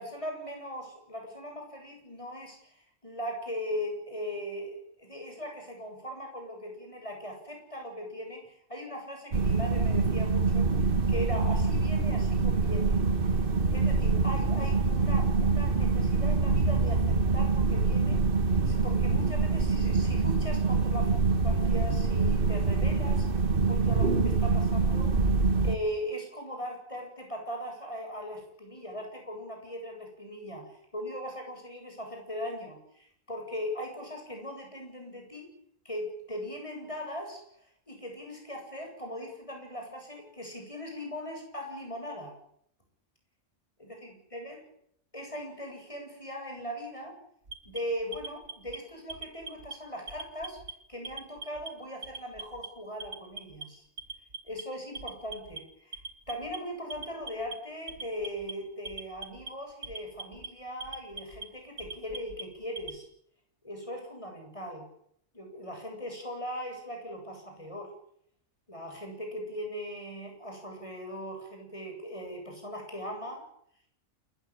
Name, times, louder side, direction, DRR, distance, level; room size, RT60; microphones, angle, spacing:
voice 1, 0.0-13.4 13.7-25.4 25.6-35.5 35.8-42.4 43.8-44.6 45.1-47.2 47.6-50.6 50.9-53.8 54.4-56.0 56.3-63.1 63.6-64.9 65.3-67.9 68.7-73.5, equal, 25° left, 2 dB, 8.0 m, -39 dB
bathroom ambience, 9.3-25.8, right 3 dB, 45° right, 1.6 m, -25 dB
Alarm, 47.5-48.8 49.1-49.7 50.1-50.7 51.0-51.7 52.0-52.7 53.0-53.6 54.0-54.6 54.9-55.6 55.9-56.6 56.9-57.5 57.9-58.5 58.8-59.5 59.8-60.5 60.8-61.4 61.8-63.0, right 4 dB, 70° right, 2.7 m, -41 dB
29.0 x 14.5 x 9.0 m, 0.69 s
omnidirectional pair, 1.3 m